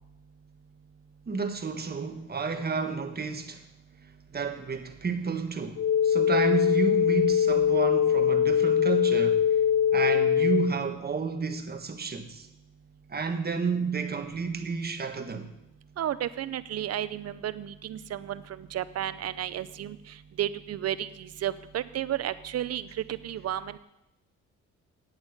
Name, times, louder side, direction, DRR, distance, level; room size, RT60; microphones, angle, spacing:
voice 1, 1.3-3.6 4.3-9.5 9.9-12.5 13.1-15.5, right 5 dB, 30° right, 1.5 m, -31 dB
sound 1, 5.8-10.7, left 8 dB, 70° left, 0.7 m, -22 dB
voice 2, 16.0-20.0 20.4-21.1 21.4-23.8, right 11 dB, 55° right, 0.7 m, -32 dB
9.1 x 8.6 x 8.2 m
cardioid pair, 90°, 30 cm